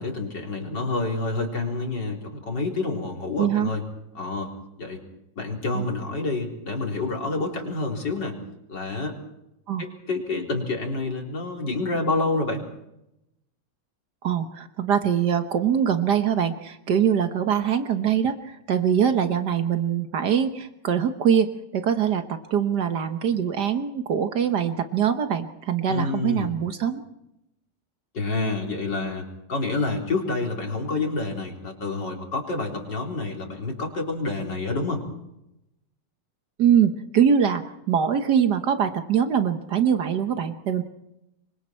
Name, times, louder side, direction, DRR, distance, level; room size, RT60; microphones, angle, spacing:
voice 1, 0.0-3.8 4.1-4.5 4.8-5.0 5.4-8.4 8.7-9.1 9.8-12.6 25.9-26.5 28.1-35.0, left 3 dB, 85° left, 1 dB, 4.6 m, -28 dB
voice 2, 3.4-3.7 5.7-5.8 9.7-9.9 14.2-27.0 36.6-40.8, right 8 dB, 70° right, 8 dB, 1.7 m, -23 dB
27.0 x 24.0 x 4.5 m, 0.86 s
omnidirectional pair, 1.9 m